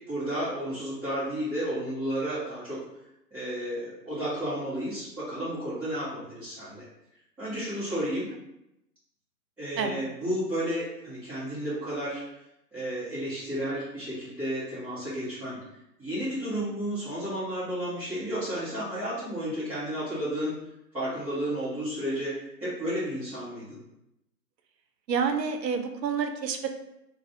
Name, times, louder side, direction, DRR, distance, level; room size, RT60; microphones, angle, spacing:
voice 1, 0.1-2.8 3.3-6.8 7.4-8.3 9.6-12.2 12.7-15.6 16.0-20.5 20.9-22.3 22.6-23.8, equal, 5° right, -15 dB, 1.1 m, -32 dB
voice 2, 25.1-26.7, right 6 dB, 85° right, 6 dB, 0.7 m, -28 dB
3.1 x 2.5 x 3.8 m, 0.86 s
hypercardioid pair, 160°, 49 cm